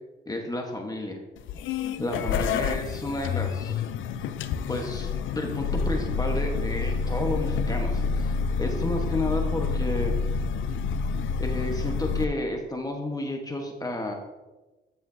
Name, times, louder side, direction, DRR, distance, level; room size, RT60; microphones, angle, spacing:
voice 1, 0.3-1.2 2.0-3.8 4.7-10.1 11.4-14.1, left 2 dB, 20° left, 2 dB, 1.1 m, -31 dB
sound 1, 1.4-12.2, left 5 dB, 75° left, 0.5 m, -28 dB
10.0 x 7.7 x 2.7 m, 1.1 s
cardioid pair, 90°, 20 cm